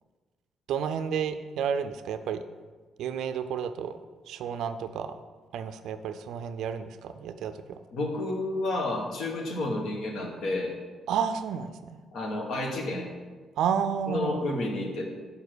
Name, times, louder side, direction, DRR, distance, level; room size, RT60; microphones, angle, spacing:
voice 1, 0.7-2.4 3.0-4.0 4.3-5.2 5.5-7.8 11.1-12.0 13.6-14.4, right 7 dB, 80° right, 10 dB, 0.3 m, -31 dB
voice 2, 7.9-10.7 12.1-13.1 14.1-15.1, left 2 dB, 70° left, 1 dB, 1.2 m, -30 dB
5.1 x 4.8 x 6.1 m, 1.4 s
cardioid pair, 90°, 0 cm